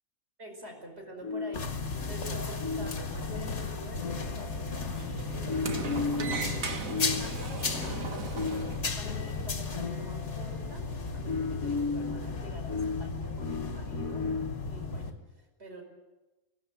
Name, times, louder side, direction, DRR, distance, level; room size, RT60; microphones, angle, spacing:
voice 1, 0.4-15.8, right 1 dB, 45° right, 3 dB, 5.4 m, -47 dB
sound 1, 1.2-14.8, left 4 dB, 85° left, 1.6 m, -37 dB
sound 2, 1.5-15.1, left 4 dB, 55° left, 2.0 m, -35 dB
Sliding door, 1.9-8.9, right 4 dB, 75° right, 2.0 m, -40 dB
22.5 x 17.5 x 8.6 m, 1.1 s
omnidirectional pair, 1.5 m